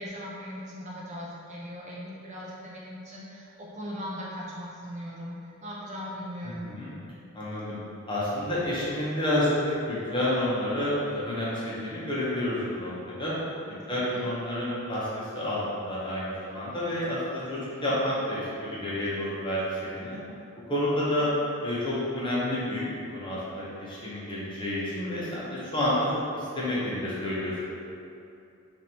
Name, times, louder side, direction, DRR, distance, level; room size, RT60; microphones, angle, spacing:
voice 1, 0.0-6.7 13.9-14.3, equal, 35° right, -5 dB, 0.5 m, -39 dB
voice 2, 6.4-6.9 7.3-7.8 8.1-9.5 9.9-13.3 13.9-15.1 15.3-20.2 20.7-21.3 21.6-22.8 23.1-27.5, left 1 dB, 25° left, -8 dB, 0.8 m, -29 dB
5.0 x 2.6 x 2.9 m, 2.6 s
head